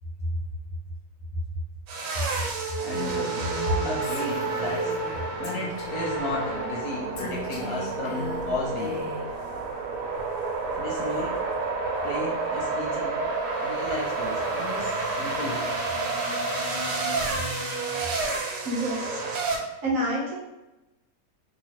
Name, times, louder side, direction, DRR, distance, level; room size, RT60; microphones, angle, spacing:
sound 1, 1.9-19.6, right 3 dB, 80° right, 1.2 m, -30 dB
voice 1, 2.8-4.9 5.4-9.1 10.8-11.4 12.0-13.2 13.6-15.7, left 2 dB, 65° left, -4 dB, 1.0 m, -33 dB
Female speech woman speaking, 2.9-5.2 5.4-6.2 7.2-9.3, left 3 dB, 90° left, 1.4 m, -39 dB
sound 2, 13.4-18.4, left 1 dB, 5° right, 0.5 m, -38 dB
voice 2, 18.6-19.2 19.8-20.4, right 1 dB, 55° right, -5 dB, 1.1 m, -27 dB
3.0 x 2.9 x 2.9 m, 0.98 s
omnidirectional pair, 1.9 m